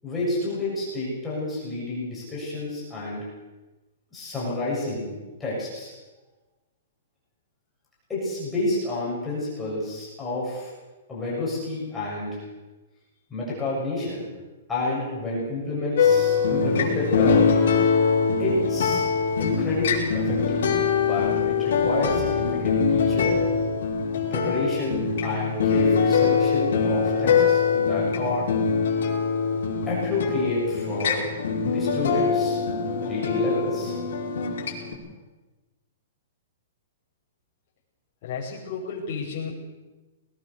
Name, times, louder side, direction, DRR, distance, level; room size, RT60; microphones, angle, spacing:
voice 1, 0.0-3.2 4.1-5.9 8.1-10.7 11.1-12.4 13.3-14.3 14.7-17.5 18.4-19.0 19.4-20.6 21.0-23.4 24.3-28.5 29.9-31.3 31.6-32.6 33.0-34.0, left 2 dB, 5° left, -7 dB, 6.8 m, -29 dB
sound 1, 16.0-34.9, left 5 dB, 55° left, 5.7 m, -23 dB
voice 2, 38.2-39.6, left 5 dB, 30° left, -10 dB, 5.9 m, -32 dB
21.5 x 19.5 x 7.0 m, 1.1 s
hypercardioid pair, 180°, 0 cm